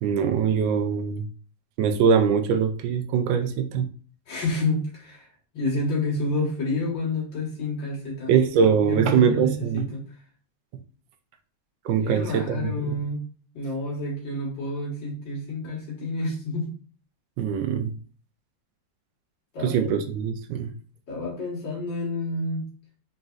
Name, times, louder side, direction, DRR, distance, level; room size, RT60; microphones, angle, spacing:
voice 1, 0.0-1.3 1.8-3.9 8.3-9.8 11.8-12.7 17.4-17.9 19.6-20.7, right 7 dB, 80° right, 8 dB, 1.3 m, -22 dB
voice 2, 4.3-5.3 5.5-10.1 12.0-13.3 13.5-16.7 19.5-19.9 21.1-22.7, left 2 dB, 75° left, -5 dB, 2.2 m, -29 dB
4.1 x 3.9 x 2.4 m, 0.42 s
omnidirectional pair, 2.0 m